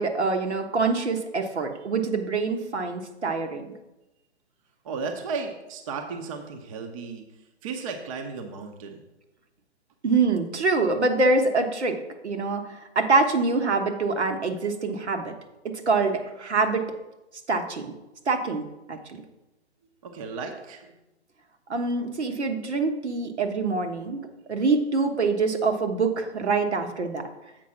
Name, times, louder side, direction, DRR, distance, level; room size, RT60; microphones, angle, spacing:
voice 1, 0.0-3.6 10.0-12.0 12.2-12.6 12.9-15.3 15.9-16.8 17.5-17.9 18.3-19.2 21.7-24.2 24.5-27.3, right 3 dB, 75° right, 4 dB, 1.3 m, -25 dB
voice 2, 4.8-7.3 7.6-9.0 20.0-20.9, right 4 dB, 30° right, 5 dB, 0.7 m, -34 dB
7.4 x 4.7 x 5.8 m, 0.95 s
figure-of-eight pair, 135°, 34 cm